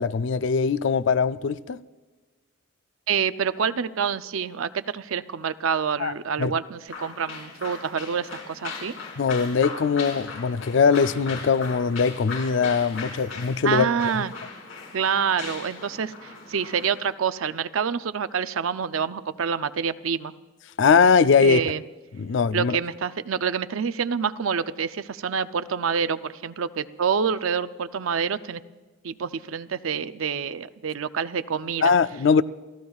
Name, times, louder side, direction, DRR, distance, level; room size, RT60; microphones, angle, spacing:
voice 1, 0.0-1.8 6.0-6.5 9.2-13.9 14.1-14.2 20.8-21.6 22.2-22.8 31.8-32.4, left 5 dB, 65° left, 0.4 m, -21 dB
voice 2, 3.1-8.9 13.6-14.3 14.9-20.3 21.4-21.8 22.5-28.6 29.0-32.0, right 6 dB, 85° right, 0.5 m, -27 dB
sound 1, 6.9-17.1, left 4 dB, 85° left, 4.7 m, -38 dB
29.0 x 15.0 x 2.4 m
head